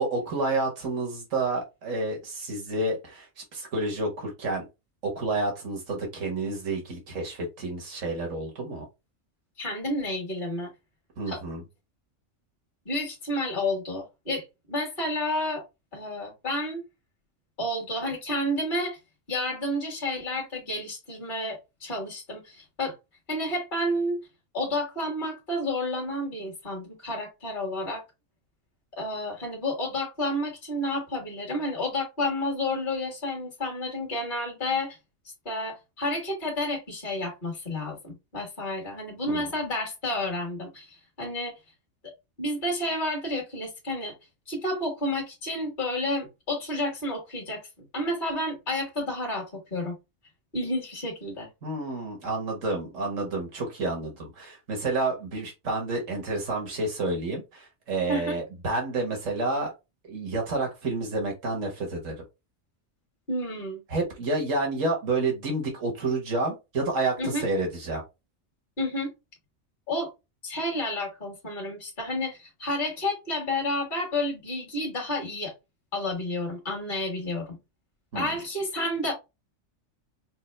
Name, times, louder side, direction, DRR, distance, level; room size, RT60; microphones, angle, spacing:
voice 1, 0.0-4.7 5.0-8.9 11.2-11.6 39.3-39.5 51.6-59.7 60.1-62.1 63.9-68.0 78.1-78.3, right 2 dB, 85° right, 1.7 m, -29 dB
voice 2, 9.6-10.7 11.3-11.4 12.8-15.6 15.9-16.8 17.6-19.0 19.3-22.9 23.3-24.2 24.5-28.0 29.0-35.0 35.4-41.5 42.4-44.1 44.5-47.6 47.9-49.9 50.5-51.5 58.1-58.4 63.3-63.8 67.2-67.5 68.8-69.1 69.9-70.1 70.4-75.5 75.9-77.6 78.1-79.1, left 1 dB, 40° left, 1.6 m, -30 dB
5.4 x 2.0 x 3.2 m
omnidirectional pair, 1.3 m